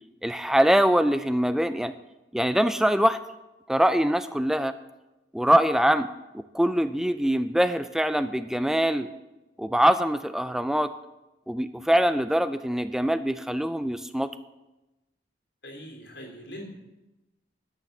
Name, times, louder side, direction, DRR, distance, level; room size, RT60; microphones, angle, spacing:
voice 1, 0.2-1.9 2.3-3.2 3.7-4.7 5.3-6.1 6.5-9.1 9.6-10.9 11.5-14.3, equal, 5° right, 12 dB, 0.3 m, -23 dB
voice 2, 15.6-16.7, equal, 80° left, 1 dB, 3.1 m, -41 dB
12.0 x 6.8 x 7.2 m, 1.0 s
head